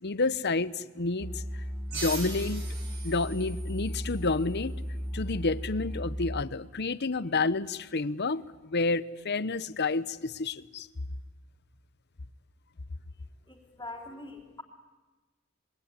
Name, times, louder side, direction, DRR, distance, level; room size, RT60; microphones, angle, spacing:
voice 1, 0.0-1.4 1.9-2.6 3.0-4.7 5.1-10.9, left 3 dB, 50° left, 15 dB, 0.9 m, -30 dB
sound 1, 1.2-6.4, equal, 5° right, 0.9 m, -36 dB
sound 2, 1.9-5.1, right 3 dB, 50° right, 6.5 m, -42 dB
voice 2, 13.5-14.6, left 2 dB, 15° left, -5 dB, 3.1 m, -43 dB
27.0 x 22.0 x 9.8 m, 1.3 s
head